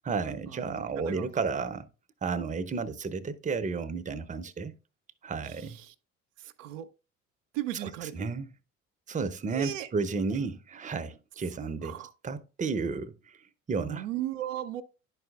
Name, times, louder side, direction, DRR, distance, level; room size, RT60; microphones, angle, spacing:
voice 1, 0.0-1.8 2.2-4.8 5.2-5.8 7.8-8.5 9.1-12.0 12.2-13.1 13.7-14.1, right 4 dB, 20° right, 0.7 m, -32 dB
voice 2, 5.4-5.9 6.4-6.9 7.5-8.3 9.5-9.9 11.8-12.1 13.8-14.8, right 12 dB, 75° right, 0.5 m, -36 dB
11.0 x 4.8 x 2.3 m
figure-of-eight pair, 55°, 38 cm